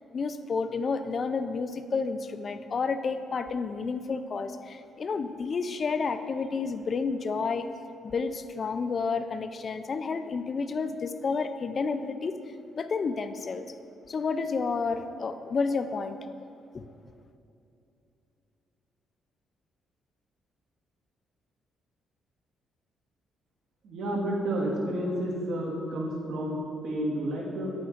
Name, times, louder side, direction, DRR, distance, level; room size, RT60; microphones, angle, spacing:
voice 1, 0.1-7.7 8.0-12.4 12.7-13.6 14.1-16.2, left 4 dB, 45° left, 10 dB, 0.4 m, -30 dB
voice 2, 23.8-27.7, right 1 dB, 70° right, -2 dB, 1.6 m, -30 dB
9.7 x 8.6 x 2.5 m, 2.6 s
cardioid pair, 90°, 0 cm